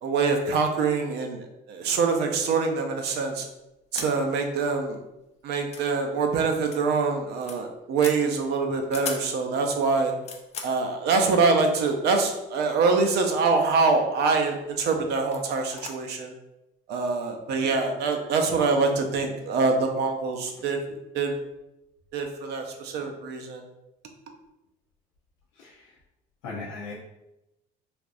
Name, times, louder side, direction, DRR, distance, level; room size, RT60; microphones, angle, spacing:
voice 1, 0.0-3.5 3.9-5.0 5.4-10.1 10.6-16.3 16.9-20.8 21.1-21.3 22.1-23.6, right 4 dB, 60° right, 4 dB, 0.5 m, -25 dB
sound 1, 3.0-3.2 3.9-4.1 4.5-4.6 4.9-5.0 5.6-5.9 6.6-6.8 7.1-7.6 8.0-8.2 8.8-9.3 9.9-10.8 11.8-11.9 12.7-13.3 13.5-14.0 14.5-14.7 15.3-15.4 15.7-15.9, left 5 dB, 35° left, 0.5 m, -38 dB
voice 2, 25.5-26.0 26.4-26.9, left 3 dB, 85° left, -5 dB, 0.6 m, -38 dB
3.4 x 2.5 x 2.5 m, 0.92 s
cardioid pair, 110°, 19 cm